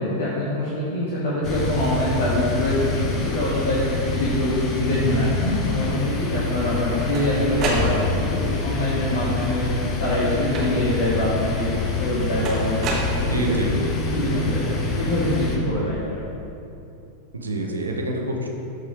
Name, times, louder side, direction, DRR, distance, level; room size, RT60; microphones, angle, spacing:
voice 1, 0.0-9.7 10.0-11.7 12.0-13.8 14.1-16.2, left 1 dB, 55° left, -7 dB, 1.5 m, -24 dB
sound 1, 1.4-15.6, left 4 dB, 30° left, 1.2 m, -27 dB
sound 2, 6.6-8.4 9.3-9.8 10.5-11.1 12.4-13.7, right 1 dB, 35° right, 1.4 m, -29 dB
voice 2, 13.2-13.7 17.3-18.5, right 2 dB, 75° right, 1 dB, 1.0 m, -26 dB
13.0 x 4.9 x 3.4 m, 2.8 s
figure-of-eight pair, 90°, 0 cm